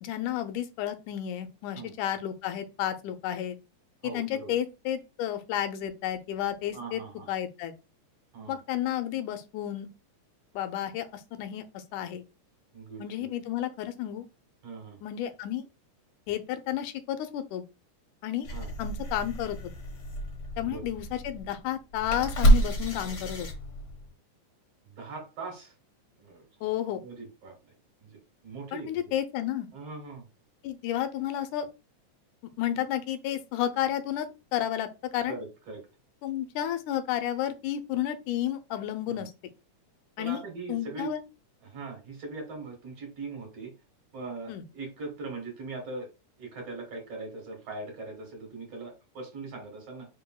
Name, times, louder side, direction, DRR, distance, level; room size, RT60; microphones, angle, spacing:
voice 1, 0.0-3.6 4.0-7.0 7.3-7.7 8.5-9.9 10.5-12.2 13.0-14.3 15.0-15.6 16.3-17.6 18.2-18.5 18.8-19.6 20.6-23.5 26.6-27.0 28.7-29.7 30.6-31.7 32.6-35.3 36.2-39.3 40.2-40.4 40.7-41.2 44.5-44.6, left 11 dB, 85° left, 2.1 m, -31 dB
voice 2, 4.0-4.6 6.7-7.3 8.3-8.6 12.7-13.3 14.6-15.0 18.5-18.7 20.6-20.8 24.9-25.7 26.2-26.5 27.0-27.6 28.0-28.9 29.7-30.2 35.3-35.8 39.1-39.3 40.2-41.1 41.6-43.7 44.1-46.1 46.4-50.1, right 3 dB, 55° right, 2.3 m, -40 dB
sound 1, 18.4-24.1, right 1 dB, 50° left, 1.3 m, -28 dB
4.8 x 4.7 x 2.3 m
omnidirectional pair, 3.5 m